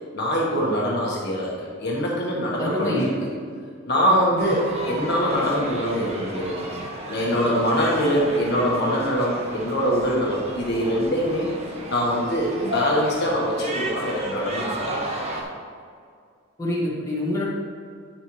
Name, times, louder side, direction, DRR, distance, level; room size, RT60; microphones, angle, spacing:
voice 1, 0.1-1.5 1.8-3.1 3.8-6.7 7.1-11.5 11.9-15.1, equal, 55° left, -4 dB, 1.6 m, -23 dB
voice 2, 2.6-3.3 4.1-4.5 16.6-17.5, left 1 dB, 15° left, -7 dB, 1.9 m, -27 dB
sound 1, 4.4-15.4, equal, 35° right, 1.1 m, -32 dB
9.9 x 6.7 x 3.2 m, 2.2 s
head